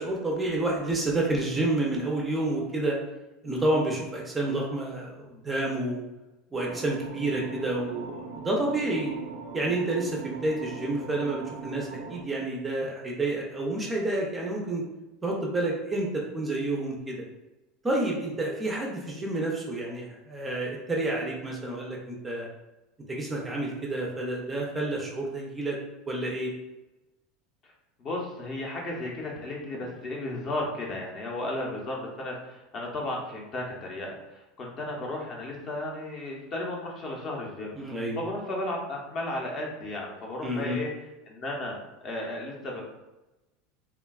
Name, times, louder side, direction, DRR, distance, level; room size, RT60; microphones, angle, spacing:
voice 1, 0.0-3.0 3.4-6.0 6.5-9.1 9.5-14.8 15.2-17.2 17.8-22.5 23.1-25.8 26.1-26.5 37.8-38.2 40.4-40.8, right 2 dB, 15° right, -2 dB, 0.4 m, -29 dB
sound 1, 6.5-12.2, right 5 dB, 80° right, 0.4 m, -40 dB
voice 2, 28.0-37.7 38.2-40.9 41.3-41.7 42.0-42.8, left 1 dB, 35° left, -1 dB, 0.6 m, -34 dB
3.3 x 2.2 x 2.3 m, 1.0 s
supercardioid pair, 155°, 0 cm